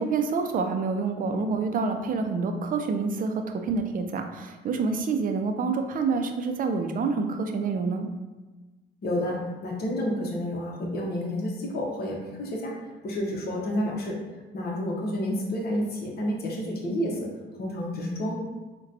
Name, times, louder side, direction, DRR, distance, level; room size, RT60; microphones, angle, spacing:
voice 1, 0.0-8.1, right 4 dB, 45° right, 5 dB, 0.4 m, -27 dB
voice 2, 9.0-14.2 14.5-17.3 17.6-18.3, left 1 dB, 50° left, -2 dB, 0.8 m, -30 dB
3.8 x 2.2 x 2.6 m, 1.2 s
cardioid pair, 90°, 20 cm